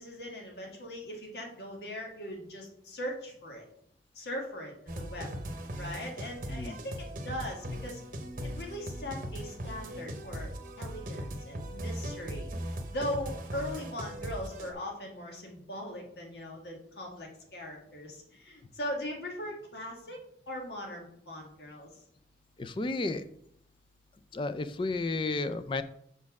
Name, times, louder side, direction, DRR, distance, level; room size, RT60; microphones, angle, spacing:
voice 1, 0.0-3.7 4.2-5.3 5.8-8.0 8.6-10.5 10.8-12.5 12.9-20.2 20.5-22.0, left 1 dB, 70° left, 0 dB, 1.7 m, -40 dB
sound 1, 4.9-14.7, equal, 50° right, 0.8 m, -39 dB
voice 2, 22.6-23.3 24.3-25.8, left 3 dB, 30° left, 11 dB, 0.4 m, -32 dB
5.3 x 4.3 x 5.9 m, 0.69 s
head